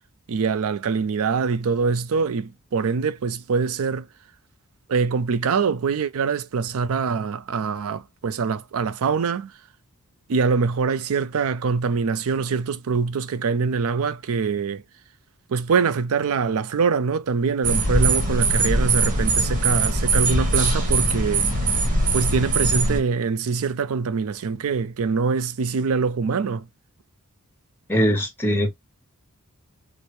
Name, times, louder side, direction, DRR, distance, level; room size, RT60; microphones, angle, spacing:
voice 1, 0.3-4.1 4.9-9.5 10.3-14.8 15.5-21.5 22.1-26.7, right 5 dB, 70° right, 0.4 m, -24 dB
sound 1, 17.6-23.0, right 2 dB, 35° right, 1.3 m, -21 dB
voice 2, 27.9-28.8, equal, 10° left, 1.0 m, -21 dB
4.3 x 2.0 x 3.0 m
head